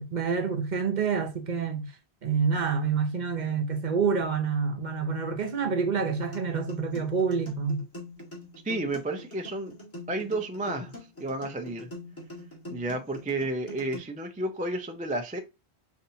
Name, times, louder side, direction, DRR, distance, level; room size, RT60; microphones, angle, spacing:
voice 1, 0.0-1.9 2.2-7.8, right 5 dB, 50° right, 0.7 m, -27 dB
sound 1, 6.0-14.0, left 1 dB, 15° left, 1.7 m, -44 dB
voice 2, 8.6-9.7 10.1-10.9 11.2-11.9 12.7-15.4, right 2 dB, 10° right, 0.4 m, -31 dB
5.4 x 2.7 x 2.7 m
omnidirectional pair, 1.1 m